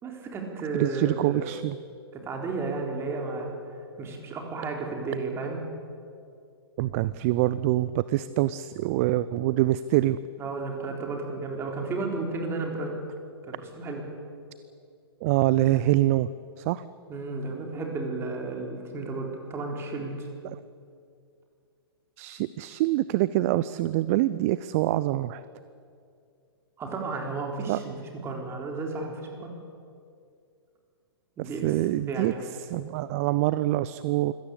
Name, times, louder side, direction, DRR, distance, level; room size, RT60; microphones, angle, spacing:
voice 1, 0.0-1.6 2.2-3.5 4.0-5.6 10.4-12.9 13.5-14.0 17.1-20.3 26.8-28.0 28.2-29.5 31.4-31.6 32.1-32.4, right 3 dB, 20° right, 2 dB, 4.0 m, -33 dB
voice 2, 0.7-1.8 6.8-10.2 15.2-16.3 16.6-16.8 20.4-20.6 22.2-25.4 27.7-27.8 31.6-32.3 32.6-34.3, right 16 dB, 35° right, 16 dB, 0.5 m, -25 dB
24.5 x 17.0 x 8.4 m, 2.4 s
figure-of-eight pair, 115°, 13 cm